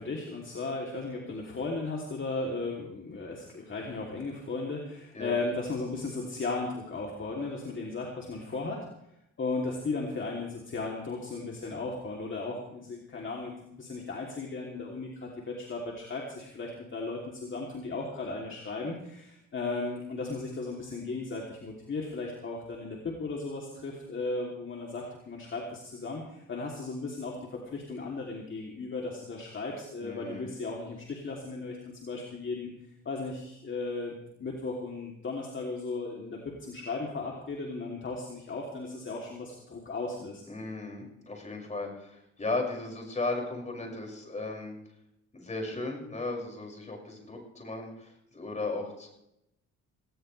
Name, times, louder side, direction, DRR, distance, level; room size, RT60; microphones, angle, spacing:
voice 1, 0.0-8.8 9.4-32.7 33.0-34.1 34.4-40.4, left 3 dB, 40° left, -1 dB, 3.0 m, -36 dB
voice 2, 30.0-30.5 40.5-44.7 45.3-49.1, left 2 dB, 25° left, 0 dB, 6.0 m, -36 dB
18.5 x 18.0 x 3.3 m, 0.81 s
cardioid pair, 90°, 30 cm